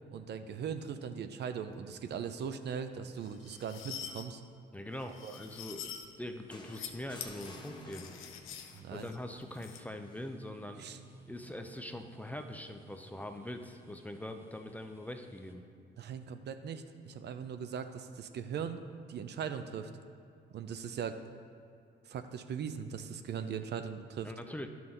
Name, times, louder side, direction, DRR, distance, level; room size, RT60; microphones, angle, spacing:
voice 1, 0.1-4.4 5.2-5.3 8.7-9.1 10.8-11.0 16.0-18.8 19.1-19.9 20.5-21.2 22.1-24.3, right 7 dB, 60° right, 9 dB, 0.5 m, -39 dB
sound 1, 3.2-4.3 5.0-6.1 6.6-6.9 7.2-9.8, left 9 dB, 85° left, 0.6 m, -46 dB
voice 2, 4.7-8.1 8.9-10.9 11.3-15.7 24.2-24.7, left 1 dB, 10° left, 6 dB, 0.5 m, -43 dB
sound 2, 6.2-15.5, right 1 dB, 10° right, 1.0 m, -59 dB
sound 3, 6.5-8.6 10.0-10.3, left 2 dB, 25° left, 1.0 m, -52 dB
10.5 x 5.9 x 3.8 m, 2.5 s
cardioid pair, 90°, 20 cm